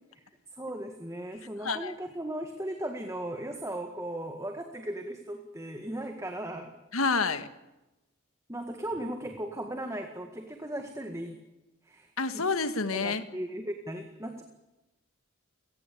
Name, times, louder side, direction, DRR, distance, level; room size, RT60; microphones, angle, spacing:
voice 1, 0.6-6.7 8.5-11.4 11.8-12.4 12.9-14.4, right 1 dB, 15° right, 5 dB, 1.9 m, -37 dB
voice 2, 1.6-1.9 6.9-7.5 12.2-13.2, left 4 dB, 80° left, 11 dB, 1.8 m, -28 dB
30.0 x 18.0 x 8.6 m, 1.0 s
head